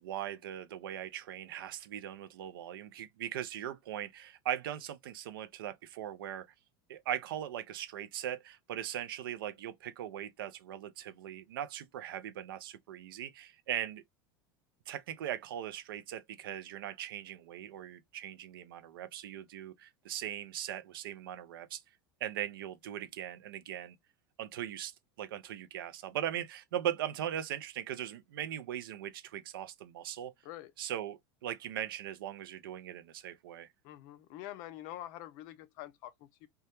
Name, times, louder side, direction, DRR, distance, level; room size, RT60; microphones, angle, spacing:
voice 1, 0.0-6.5 6.9-14.0 14.9-21.8 22.2-24.0 24.4-30.3 30.8-33.7, right 11 dB, 75° right, 0.4 m, -39 dB
voice 2, 33.8-36.5, left 14 dB, 60° left, 0.4 m, -46 dB
2.2 x 2.1 x 2.9 m
hypercardioid pair, 90°, 12 cm